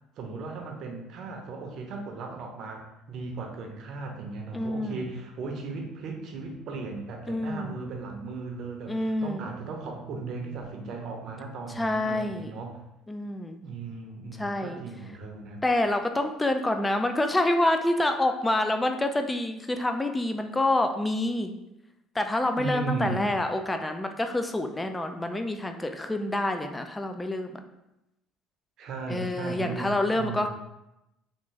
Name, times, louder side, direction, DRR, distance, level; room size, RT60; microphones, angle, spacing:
voice 1, 0.2-12.8 13.6-15.6 22.6-23.4 28.8-30.5, right 3 dB, 60° right, 2 dB, 0.7 m, -36 dB
voice 2, 4.5-5.1 7.3-7.8 8.9-9.4 11.8-12.5 13.1-13.6 14.4-14.8 15.6-21.5 22.1-27.6 29.1-30.5, left 1 dB, 15° left, 6 dB, 0.3 m, -27 dB
3.5 x 2.5 x 3.1 m, 0.90 s
supercardioid pair, 100°, 0 cm